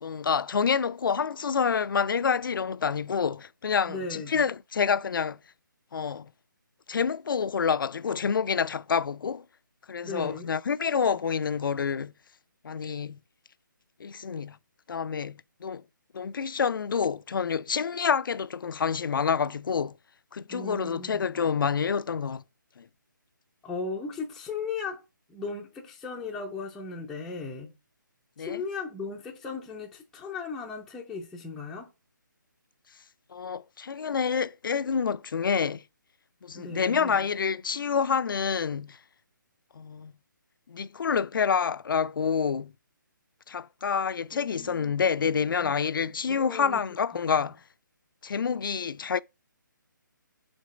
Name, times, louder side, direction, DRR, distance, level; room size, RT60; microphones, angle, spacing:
voice 1, 0.0-5.4 5.9-6.3 6.9-9.4 9.9-12.1 12.6-13.2 14.0-14.6 14.9-15.8 16.1-20.0 20.3-22.4 22.8-22.9 28.4-28.6 33.3-35.8 36.4-39.0 39.8-40.1 40.7-42.7 43.5-47.6 48.2-49.2, left 6 dB, 75° left, 0.4 m, -28 dB
voice 2, 3.9-4.4 10.0-10.5 20.5-21.5 23.6-25.0 25.3-27.7 28.4-31.9 36.6-37.3 44.3-46.8, left 4 dB, ahead, 0.4 m, -37 dB
5.1 x 3.8 x 5.0 m
hypercardioid pair, 165°, 11 cm